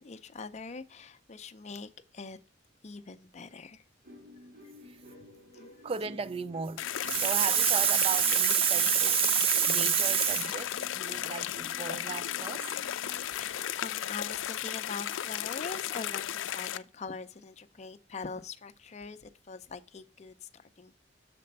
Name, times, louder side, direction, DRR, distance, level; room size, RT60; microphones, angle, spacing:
voice 1, 0.0-2.4 2.8-3.8 5.5-5.7 13.4-21.0, left 4 dB, 35° left, 0.5 m, -43 dB
sound 1, 4.0-14.2, left 1 dB, 55° right, 3.4 m, -52 dB
voice 2, 5.8-12.8, right 9 dB, 30° right, 0.3 m, -28 dB
sound 2, 6.8-16.8, left 11 dB, 90° left, 0.4 m, -35 dB
6.7 x 4.3 x 5.3 m
head